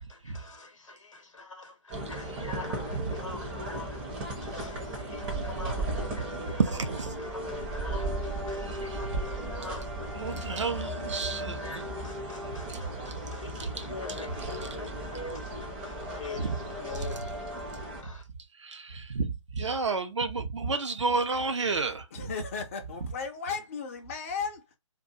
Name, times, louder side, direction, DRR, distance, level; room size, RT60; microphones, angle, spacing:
voice 1, 0.0-6.6 7.2-17.7 18.0-18.2, left 3 dB, 70° left, 0.7 m, -45 dB
sound 1, 1.9-18.0, right 1 dB, 20° right, 0.6 m, -36 dB
voice 2, 6.6-7.1 8.6-9.2 10.1-12.0 12.7-13.2 13.6-14.7 16.3-16.6 16.9-17.2 18.6-22.3, right 4 dB, 65° right, 0.6 m, -32 dB
voice 3, 22.1-24.8, left 5 dB, 25° left, 0.3 m, -35 dB
2.3 x 2.2 x 2.6 m
figure-of-eight pair, 140°, 17 cm